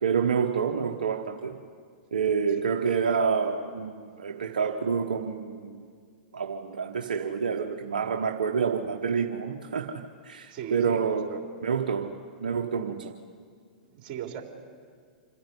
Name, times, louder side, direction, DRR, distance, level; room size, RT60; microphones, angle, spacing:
voice 1, 0.0-1.6 2.1-5.8 6.3-11.4 11.6-13.2, right 6 dB, 80° right, 1.1 m, -28 dB
voice 2, 10.5-11.4 13.8-14.4, right 9 dB, 45° right, 3.3 m, -38 dB
27.0 x 10.5 x 9.7 m
hypercardioid pair, 110°, 5 cm